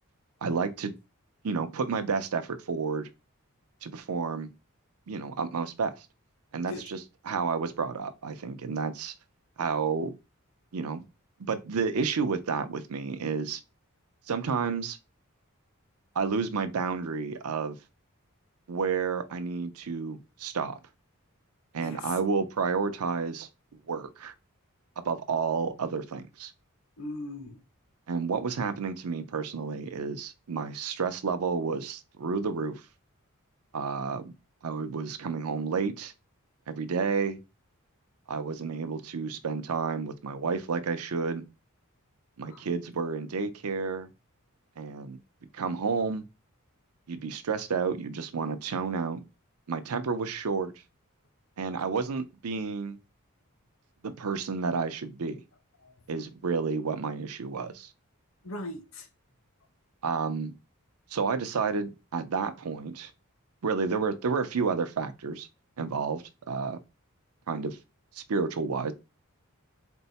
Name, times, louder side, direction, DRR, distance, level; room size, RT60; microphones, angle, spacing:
voice 1, 0.4-0.9 1.4-3.1 3.8-4.5 5.1-6.1 6.5-7.0 7.3-9.1 9.6-10.1 10.7-11.0 11.5-13.6 14.3-15.0 16.1-17.8 18.7-20.8 21.7-23.5 23.9-24.3 25.0-26.5 28.1-32.8 33.7-34.3 34.6-36.1 36.7-37.4 38.3-41.5 42.4-44.1 44.8-45.2 45.5-46.2 47.1-49.2 49.7-50.7 51.6-53.0 54.0-55.4 56.1-57.9 60.0-60.5 61.1-63.1 63.6-65.5 65.8-66.8 67.5-67.8 68.1-68.9, right 5 dB, 85° right, 0.6 m, -30 dB
voice 2, 21.8-22.2 27.0-27.6 42.5-42.6 55.8-55.9 58.4-59.1, left 2 dB, 65° left, 0.9 m, -39 dB
4.5 x 2.1 x 4.0 m
head